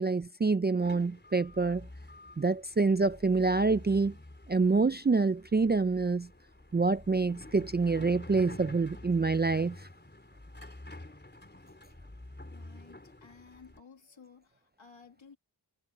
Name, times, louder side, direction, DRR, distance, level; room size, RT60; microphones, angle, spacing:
voice 1, 0.0-1.9 2.4-4.1 4.5-6.3 6.7-9.8, right 4 dB, 25° right, 0.4 m, -26 dB
sound 1, 0.8-13.8, left 1 dB, 25° left, 4.1 m, -48 dB
voice 2, 12.5-15.4, left 5 dB, 85° left, 2.2 m, -55 dB
wide cardioid pair, 70°, 45 cm